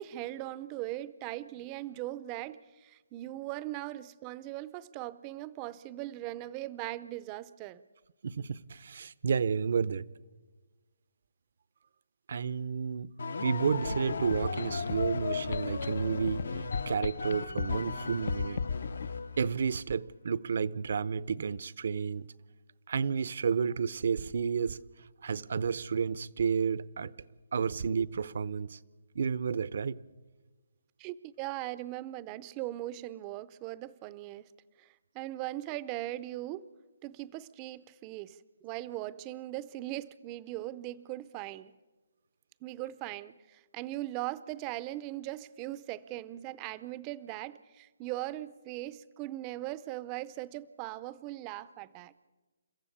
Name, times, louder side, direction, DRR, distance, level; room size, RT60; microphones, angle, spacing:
voice 1, 0.0-7.8 31.0-34.4 34.8-36.7 37.0-41.7 42.6-52.1, right 16 dB, 20° right, 0.6 m, -39 dB
voice 2, 8.2-10.1 12.3-13.1 13.4-18.6 19.4-22.3 22.9-27.1 27.5-28.8 29.1-30.0, right 6 dB, 55° right, 0.7 m, -31 dB
sound 1, 13.2-19.7, left 4 dB, 75° left, 1.4 m, -36 dB
sound 2, 13.9-19.1, left 5 dB, 50° left, 0.6 m, -37 dB
30.0 x 14.5 x 8.5 m
hypercardioid pair, 165°, 0 cm